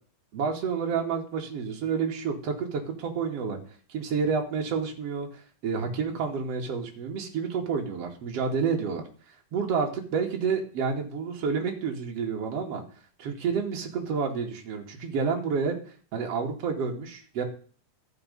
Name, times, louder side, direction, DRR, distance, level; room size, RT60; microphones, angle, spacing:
voice 1, 0.3-3.6 3.9-9.0 9.5-12.8 13.2-15.8 16.1-17.4, right 5 dB, 50° right, 1 dB, 3.0 m, -29 dB
14.5 x 6.5 x 5.4 m, 0.42 s
omnidirectional pair, 3.9 m